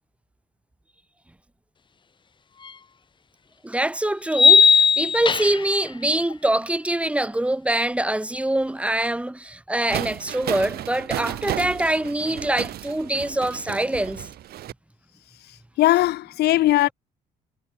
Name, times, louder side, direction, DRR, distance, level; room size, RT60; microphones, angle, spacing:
sound 1, 2.7-2.8 4.3-5.8, left 5 dB, 30° left, 1.1 m, -16 dB
voice 1, 3.6-14.3, right 1 dB, 5° right, 7.3 m, -24 dB
sound 2, 9.9-14.7, right 13 dB, 65° right, 2.7 m, -33 dB
voice 2, 15.8-16.9, left 15 dB, 75° left, 1.4 m, -19 dB
cardioid pair, 110°, 17 cm